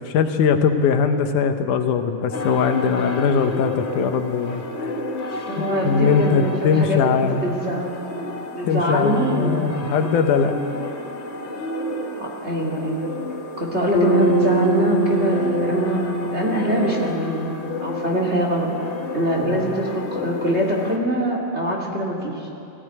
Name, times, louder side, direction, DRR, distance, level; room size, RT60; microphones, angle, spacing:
voice 1, 0.0-4.9 5.6-7.6 8.6-10.6 19.4-19.8, left 6 dB, 80° left, 7 dB, 2.5 m, -21 dB
sound 1, 2.3-21.0, left 1 dB, 60° left, 0.7 m, -31 dB
voice 2, 5.4-7.9 8.5-9.8 12.2-13.0 13.6-17.5 17.8-18.7 19.1-22.5, equal, 25° right, -1 dB, 2.1 m, -23 dB
Bass guitar, 13.9-18.3, right 2 dB, 40° left, 2.4 m, -24 dB
18.5 x 14.5 x 9.6 m, 2.7 s
omnidirectional pair, 3.5 m